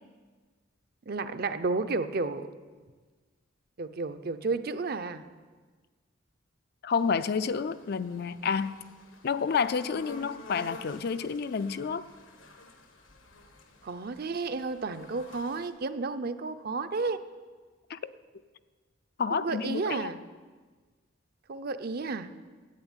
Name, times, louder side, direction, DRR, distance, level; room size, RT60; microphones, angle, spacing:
voice 1, 1.1-2.5 3.8-5.2 13.8-17.2 19.3-20.2 21.5-22.3, right 3 dB, 50° right, 11 dB, 0.6 m, -32 dB
voice 2, 6.8-8.8 9.2-12.1 17.9-18.0 19.2-20.1, left 5 dB, 55° left, 13 dB, 0.4 m, -29 dB
sound 1, 6.9-15.7, left 2 dB, 80° left, 1.5 m, -50 dB
10.5 x 8.7 x 9.1 m, 1.4 s
head